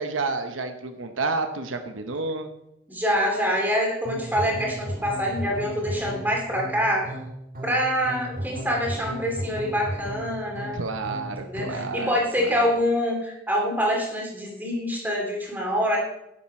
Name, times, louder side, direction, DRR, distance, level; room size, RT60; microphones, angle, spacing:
voice 1, 0.0-2.5 10.7-12.1 12.4-12.6, right 3 dB, 80° right, 7 dB, 0.9 m, -30 dB
voice 2, 2.9-7.0 7.6-10.8 11.4-16.0, equal, 10° right, -1 dB, 2.4 m, -25 dB
sound 1, 4.0-11.9, right 1 dB, 45° right, 1.8 m, -35 dB
11.0 x 7.4 x 4.4 m, 0.85 s
head